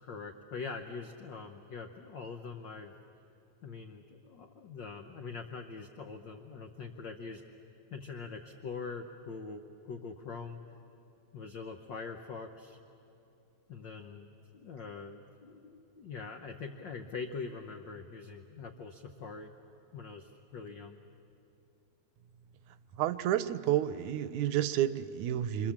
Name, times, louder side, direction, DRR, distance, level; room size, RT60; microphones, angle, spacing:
voice 1, 0.0-2.9 3.6-7.4 7.9-10.6 11.3-12.8 13.7-19.5 19.9-21.0, left 4 dB, 90° left, 5 dB, 1.0 m, -43 dB
voice 2, 23.0-25.7, right 12 dB, 75° right, 13 dB, 2.0 m, -30 dB
27.5 x 26.5 x 7.3 m, 2.8 s
omnidirectional pair, 3.5 m